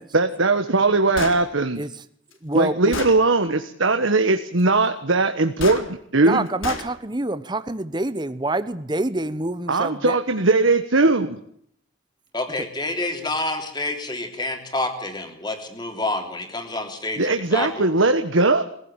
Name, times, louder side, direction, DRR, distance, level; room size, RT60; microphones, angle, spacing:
voice 1, 0.1-1.8 2.5-6.5 9.7-11.4 17.2-18.6, right 3 dB, 75° right, 7 dB, 1.4 m, -19 dB
Gunshot gunfire, 1.2-1.4 2.3-2.4 2.9-3.2 5.6-5.8 6.6-6.9, left 3 dB, 80° left, 3.8 m, -29 dB
voice 2, 2.4-3.0 6.3-10.2 12.6-12.7, right 2 dB, 20° right, 13 dB, 1.0 m, -26 dB
voice 3, 12.3-17.9, left 2 dB, 20° left, 5 dB, 3.4 m, -28 dB
22.5 x 16.0 x 9.0 m, 0.69 s
head